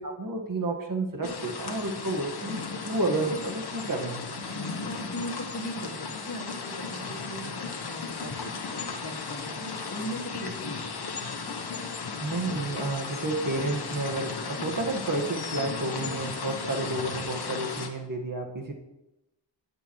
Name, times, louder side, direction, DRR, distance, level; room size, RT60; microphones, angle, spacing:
voice 1, 0.0-2.6 2.8-4.4 12.2-18.7, right 2 dB, 45° right, 2 dB, 1.7 m, -31 dB
sound 1, 1.2-17.9, left 4 dB, 55° left, 1.2 m, -35 dB
voice 2, 4.7-8.4 8.7-11.6, equal, 35° left, 1 dB, 2.2 m, -39 dB
16.0 x 7.1 x 3.2 m, 0.93 s
cardioid pair, 70°, 46 cm